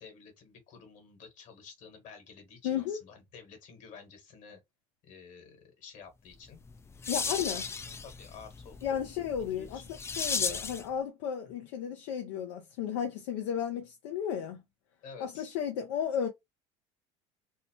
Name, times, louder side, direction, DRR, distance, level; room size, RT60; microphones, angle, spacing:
voice 1, 0.0-4.6 5.0-6.6 7.0-9.0 9.5-9.8 15.0-15.5, left 5 dB, 60° left, 1.4 m, -51 dB
voice 2, 2.6-3.0 7.1-7.6 8.8-14.6 15.2-16.3, left 8 dB, 80° left, 0.5 m, -34 dB
sound 1, 6.5-10.9, left 5 dB, 20° left, 0.3 m, -36 dB
2.8 x 2.1 x 2.8 m
supercardioid pair, 90°, 15 cm